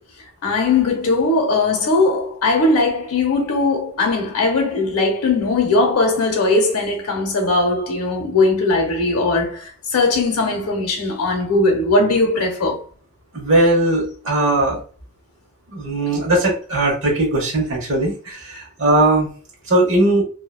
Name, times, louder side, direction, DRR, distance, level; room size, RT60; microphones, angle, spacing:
voice 1, 0.4-12.8, left 3 dB, 85° left, 0.8 m, -19 dB
voice 2, 13.3-14.8 15.7-19.3 19.7-20.2, right 1 dB, 60° right, 0.9 m, -18 dB
2.6 x 2.2 x 2.3 m
head